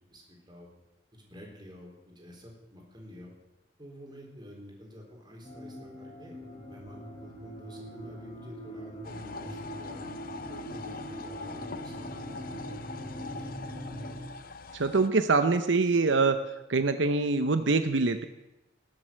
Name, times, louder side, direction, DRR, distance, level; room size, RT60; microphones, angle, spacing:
voice 1, 0.1-0.7 1.1-3.3 3.8-6.4 6.7-10.1 10.5-13.0 13.4-13.5, equal, 25° right, 0 dB, 4.0 m, -49 dB
sound 1, 5.4-14.2, equal, 35° left, 3.5 m, -42 dB
sound 2, 9.0-15.1, left 4 dB, 50° left, 0.8 m, -43 dB
voice 2, 14.7-16.4 16.7-18.2, right 3 dB, 80° right, 9 dB, 0.8 m, -24 dB
19.5 x 7.8 x 7.6 m, 0.94 s
head